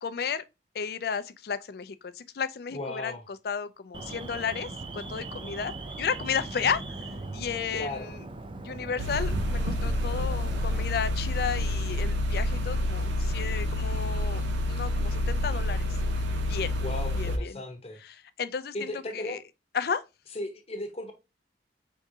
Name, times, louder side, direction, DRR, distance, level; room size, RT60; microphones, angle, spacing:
voice 1, 0.0-0.4 0.7-8.2 8.6-15.9 16.5-16.7 17.1-17.6 18.0-19.4 19.7-20.0, left 6 dB, 55° left, 0.4 m, -33 dB
voice 2, 2.7-3.2 7.7-8.1 16.8-18.0 18.7-19.4 20.3-21.1, left 1 dB, 35° left, 0.8 m, -36 dB
Alarm, 3.9-10.9, right 2 dB, 25° right, 0.4 m, -40 dB
sound 1, 9.0-17.4, left 1 dB, 85° right, 0.6 m, -28 dB
4.7 x 3.5 x 2.7 m
head